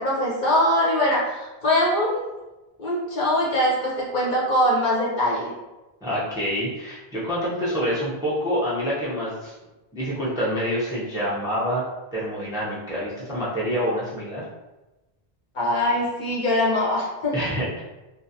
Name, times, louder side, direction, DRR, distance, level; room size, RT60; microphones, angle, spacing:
voice 1, 0.0-2.3 2.8-5.5 15.5-17.3, left 1 dB, 55° left, -5 dB, 0.7 m, -22 dB
voice 2, 6.0-9.5 9.9-11.8 12.1-14.4 17.3-17.8, equal, 5° right, -8 dB, 0.5 m, -27 dB
2.5 x 2.3 x 2.7 m, 1.1 s
omnidirectional pair, 1.0 m